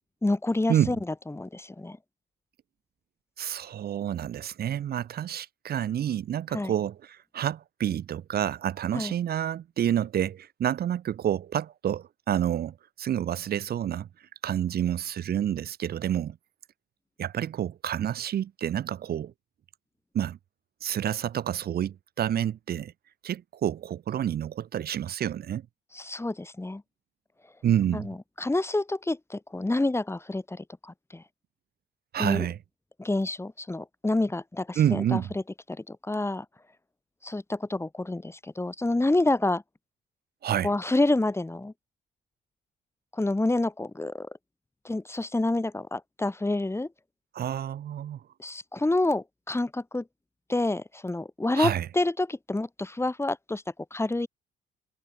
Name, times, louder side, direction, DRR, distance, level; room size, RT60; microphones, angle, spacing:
voice 1, 0.2-1.0 1.3-2.0 6.5-6.7 8.9-9.1 25.9-26.8 27.9-31.2 32.2-32.5 33.0-35.2 35.7-36.5 37.2-39.6 40.6-41.7 43.1-44.3 44.8-46.9 48.4-50.0 50.5-53.6 53.9-54.3, left 2 dB, 15° left, 2.2 m, -28 dB
voice 2, 3.4-14.1 14.4-16.4 17.2-19.3 20.1-20.4 20.8-22.9 23.2-25.6 27.6-28.1 32.1-32.6 34.8-35.3 40.4-40.7 47.3-48.2 51.6-51.9, right 10 dB, 50° right, 0.6 m, -28 dB
cardioid pair, 90°, 20 cm